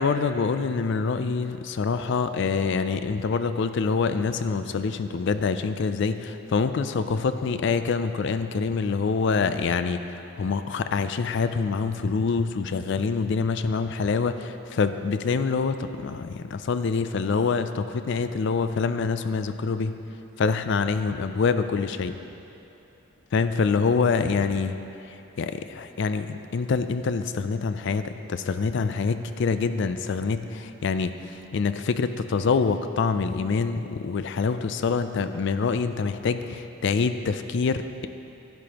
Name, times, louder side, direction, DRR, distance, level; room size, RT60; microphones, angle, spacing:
voice 1, 0.0-19.9 20.4-22.1 23.3-24.8 25.4-38.1, left 5 dB, 55° left, 10 dB, 0.4 m, -26 dB
11.0 x 10.5 x 2.9 m, 2.8 s
head